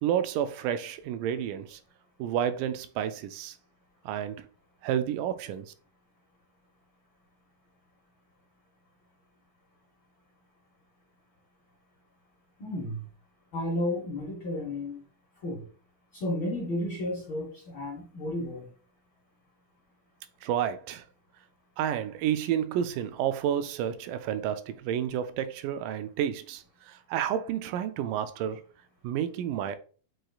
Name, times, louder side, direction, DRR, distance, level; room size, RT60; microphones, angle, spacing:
voice 1, 0.0-1.8 2.2-3.6 4.1-4.5 4.8-5.7 20.4-21.1 21.8-28.6 29.0-29.8, right 10 dB, 85° right, 2.1 m, -30 dB
voice 2, 12.6-13.0 13.5-15.0 15.4-15.6 16.1-18.7, left 1 dB, 70° left, 1.2 m, -32 dB
7.7 x 3.0 x 2.3 m
omnidirectional pair, 3.6 m